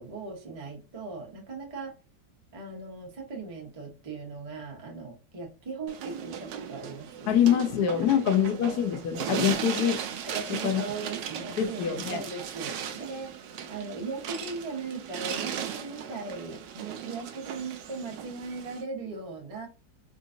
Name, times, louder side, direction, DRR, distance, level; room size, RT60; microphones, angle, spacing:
voice 1, 0.0-1.9 2.5-7.3 9.5-9.7 10.2-19.7, right 4 dB, 35° right, 0 dB, 0.6 m, -38 dB
sound 1, 5.9-18.8, right 8 dB, 75° right, 1.2 m, -37 dB
voice 2, 7.3-10.0 10.6-10.8 11.6-12.2, left 9 dB, 65° left, 5 dB, 1.1 m, -24 dB
3.8 x 2.5 x 2.5 m, 0.32 s
omnidirectional pair, 2.0 m